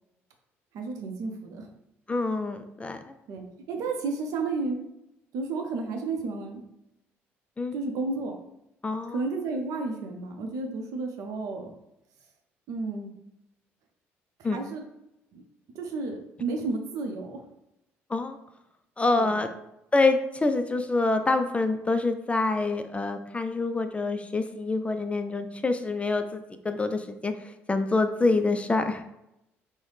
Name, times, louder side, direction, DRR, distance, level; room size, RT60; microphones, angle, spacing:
voice 1, 0.7-1.7 3.3-4.8 5.3-6.6 7.7-8.4 9.1-11.7 12.7-13.1 14.4-14.8 15.3-15.4 15.7-17.4 19.2-19.3, right 3 dB, 65° right, 4 dB, 0.6 m, -32 dB
voice 2, 2.1-3.0 7.6-7.7 8.8-9.2 14.4-14.6 18.1-18.4 19.0-19.5 19.9-29.0, left 3 dB, 20° left, 8 dB, 0.3 m, -26 dB
3.8 x 2.1 x 3.2 m, 0.85 s
hypercardioid pair, 55°, 6 cm